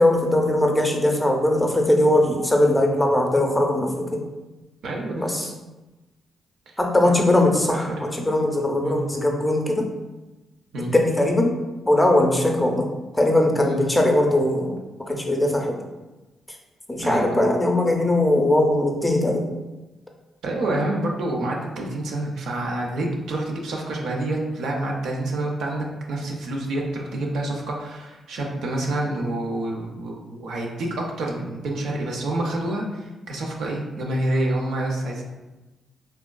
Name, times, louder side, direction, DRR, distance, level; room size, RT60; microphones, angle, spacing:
voice 1, 0.0-4.2 5.2-5.5 6.8-9.9 10.9-11.5 11.9-12.9 13.1-14.8 15.1-15.8 16.5-16.6 16.9-19.5, left 1 dB, 10° left, 1 dB, 0.5 m, -20 dB
voice 2, 4.8-5.3 6.7-6.8 7.0-7.3 7.7-8.0 8.8-9.0 10.7-10.9 13.5-13.8 17.0-17.5 20.4-35.2, right 1 dB, 80° right, -1 dB, 0.5 m, -28 dB
3.4 x 2.3 x 2.2 m, 1.1 s
cardioid pair, 70°, 0 cm